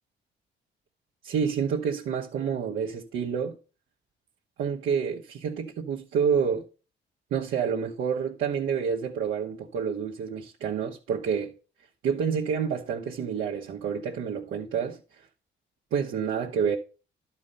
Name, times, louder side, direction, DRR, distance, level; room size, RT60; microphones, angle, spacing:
voice 1, 1.2-3.6 4.6-6.7 7.3-11.5 12.0-15.0 15.9-16.8, right 7 dB, 80° right, 1.1 m, -28 dB
11.5 x 4.6 x 5.4 m
cardioid pair, 90°, 20 cm